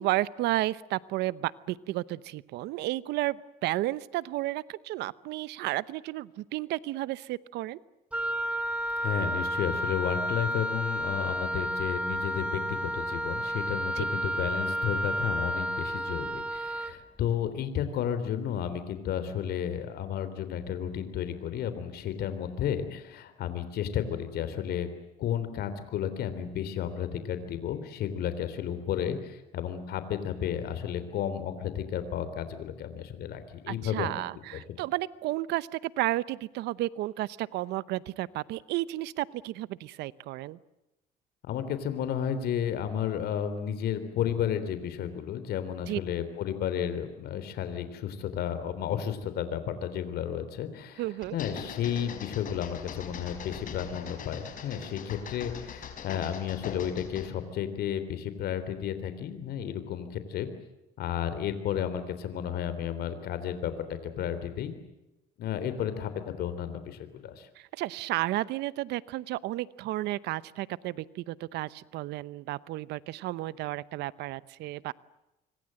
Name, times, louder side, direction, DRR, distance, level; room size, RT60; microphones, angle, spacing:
voice 1, 0.0-7.8 14.0-14.1 33.7-40.6 45.9-46.0 51.0-51.4 67.6-74.9, right 17 dB, 85° right, 19 dB, 0.8 m, -32 dB
Wind instrument woodwind instrument, 8.1-17.0, equal, 5° right, 1.3 m, -31 dB
voice 2, 9.0-24.9 25.2-34.2 34.7-34.8 41.4-51.0 51.3-60.5 61.0-64.7 65.4-66.1 66.4-67.5, left 9 dB, 70° left, 11 dB, 3.5 m, -32 dB
sound 1, 51.2-57.4, left 6 dB, 55° left, 4.9 m, -42 dB
26.0 x 24.5 x 7.7 m, 0.93 s
cardioid pair, 110°, 17 cm